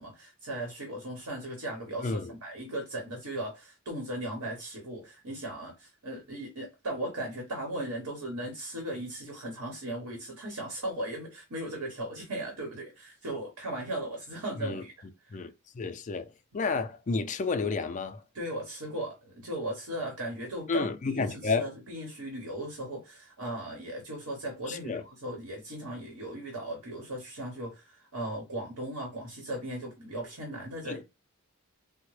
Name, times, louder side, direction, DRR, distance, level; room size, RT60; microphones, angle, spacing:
voice 1, 0.0-15.5 16.5-16.6 18.3-31.0, right 1 dB, 80° right, 1.1 m, -37 dB
voice 2, 15.3-16.3 16.5-18.2 20.7-21.7 24.7-25.0 30.9-31.0, left 4 dB, 35° left, 0.3 m, -31 dB
3.6 x 2.1 x 3.1 m
head